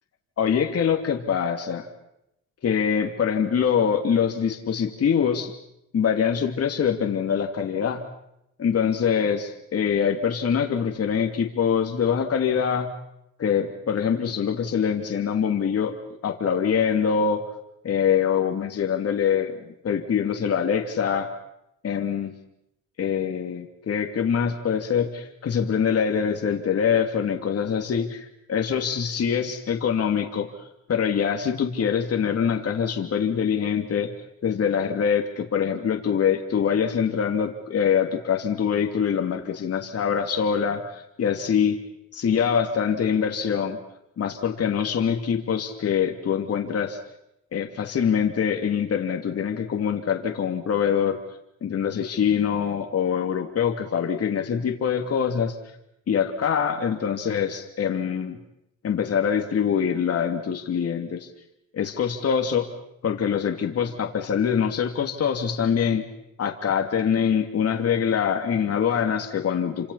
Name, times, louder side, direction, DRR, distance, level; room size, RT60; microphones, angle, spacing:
voice 1, 0.4-1.9 2.6-5.5 5.9-8.0 8.6-12.9 13.4-15.9 16.2-17.4 17.8-19.6 19.8-21.3 21.8-22.3 23.0-30.5 30.9-34.1 34.4-41.8 42.1-43.8 44.2-47.0 47.5-51.2 51.6-55.5 56.1-58.4 58.8-61.3 61.7-62.7 63.0-66.1 66.4-69.9, left 7 dB, 55° left, 3 dB, 2.9 m, -24 dB
29.5 x 26.0 x 5.8 m, 0.80 s
cardioid pair, 90°, 30 cm